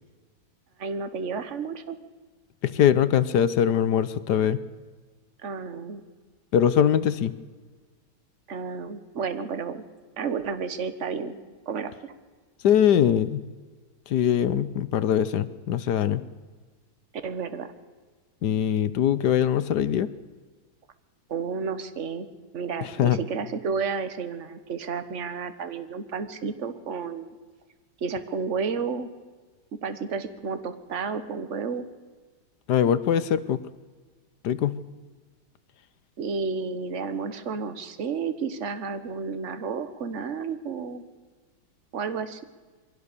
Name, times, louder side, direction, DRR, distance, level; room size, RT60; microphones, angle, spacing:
voice 1, 0.8-2.0 5.4-6.0 8.5-9.8 10.2-11.3 11.7-12.1 17.2-17.7 21.3-22.3 22.5-27.3 28.0-29.1 29.8-31.9 36.2-41.0 41.9-42.4, right 5 dB, 40° right, 11 dB, 1.4 m, -31 dB
voice 2, 2.6-4.6 6.5-7.3 12.6-13.4 14.1-16.2 18.4-20.1 22.8-23.2 32.7-33.6 34.4-34.8, left 9 dB, 65° left, 14 dB, 1.3 m, -22 dB
23.5 x 17.0 x 6.8 m, 1.4 s
omnidirectional pair, 2.2 m